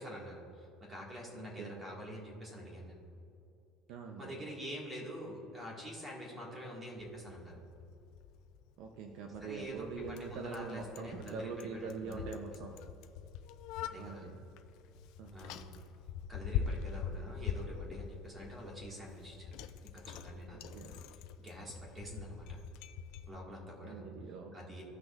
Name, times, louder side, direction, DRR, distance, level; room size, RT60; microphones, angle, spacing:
voice 1, 0.0-3.0 4.2-7.6 9.4-12.3 13.8-14.3 15.3-15.7 16.3-19.4 19.9-20.8 21.4-22.6 23.3-24.0 24.5-24.8, equal, 15° right, -3 dB, 1.8 m, -46 dB
voice 2, 1.3-1.8 3.9-4.4 8.8-12.8 13.9-14.4 15.2-15.4 20.7-21.0 23.8-24.6, right 5 dB, 60° right, 4 dB, 0.6 m, -44 dB
Bicycle, 7.0-23.3, left 7 dB, 60° left, 0.4 m, -44 dB
16.0 x 6.2 x 2.5 m, 2.7 s
cardioid pair, 170°, 0 cm